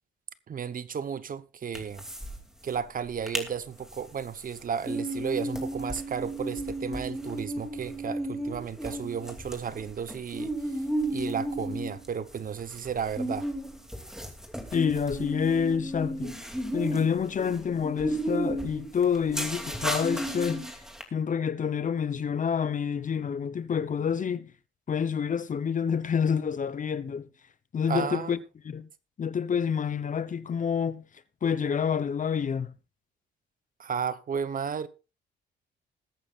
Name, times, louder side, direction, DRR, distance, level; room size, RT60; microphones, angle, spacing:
voice 1, 0.5-2.1 2.6-10.5 11.1-13.5 27.9-28.3 33.8-34.9, right 7 dB, 45° right, 0.9 m, -33 dB
sound 1, 1.7-2.4 2.6-2.7 3.1-3.5 3.9-21.0, right 1 dB, 5° right, 2.6 m, -34 dB
voice 2, 14.7-16.4 16.7-20.8 21.1-24.5 24.9-27.3 27.7-28.4 28.6-28.9 29.2-31.0 31.4-32.7, left 7 dB, 40° left, 0.8 m, -28 dB
21.0 x 8.9 x 2.4 m
cardioid pair, 90°, 20 cm